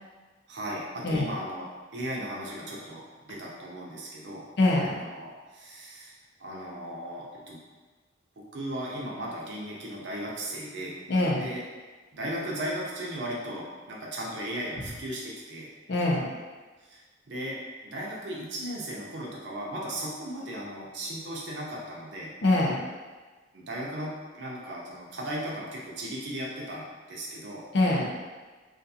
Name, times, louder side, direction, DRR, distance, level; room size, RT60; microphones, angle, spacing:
voice 1, 0.5-1.7 1.9-4.4 4.9-6.1 6.4-7.6 8.5-11.0 11.3-11.6 12.1-15.7 16.9-17.6 17.8-22.3 23.5-27.6, right 1 dB, 65° right, -3 dB, 0.6 m, -36 dB
voice 2, 4.6-5.0 11.1-11.5 15.9-16.3 22.4-22.8 27.7-28.1, left 2 dB, 60° left, -2 dB, 0.5 m, -24 dB
2.5 x 2.4 x 2.6 m, 1.3 s
head